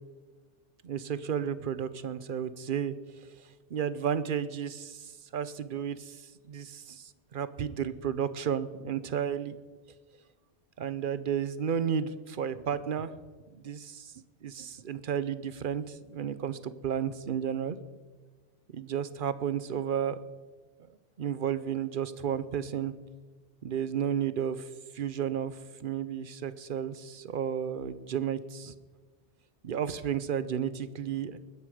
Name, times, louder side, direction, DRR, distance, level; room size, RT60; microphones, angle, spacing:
voice 1, 0.8-2.9 3.7-9.6 10.8-13.1 13.5-14.1 14.4-17.8 18.7-20.2 21.2-22.9 23.6-24.7 24.9-28.7 29.6-31.4, right 8 dB, 50° right, 14 dB, 0.9 m, -32 dB
21.0 x 9.8 x 4.9 m, 1.3 s
omnidirectional pair, 1.2 m